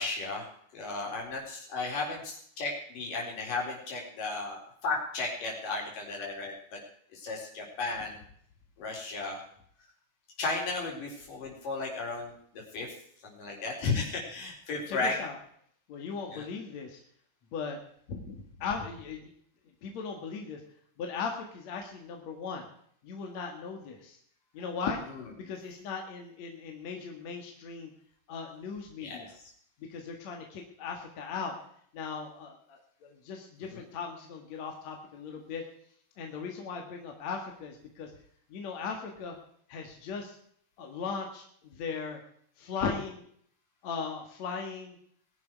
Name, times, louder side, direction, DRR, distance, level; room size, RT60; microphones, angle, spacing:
voice 1, 0.0-6.8 7.1-8.2 8.8-9.4 10.4-12.4 12.7-12.9 13.2-15.2 16.3-16.5 25.1-25.2 29.0-29.3 33.7-33.8, left 3 dB, 80° left, -1 dB, 5.8 m, -34 dB
voice 2, 14.9-15.3 15.9-17.0 17.5-17.8 18.1-19.3 19.8-20.6 21.0-22.7 23.0-24.2 24.5-25.0 25.4-27.9 28.3-29.3 29.9-31.5 31.9-35.6 36.2-38.1 38.5-39.4 39.7-40.4 40.8-42.2 42.6-43.2 43.8-45.0, left 5 dB, 60° left, 2 dB, 3.0 m, -38 dB
21.5 x 11.0 x 4.7 m, 0.64 s
omnidirectional pair, 3.8 m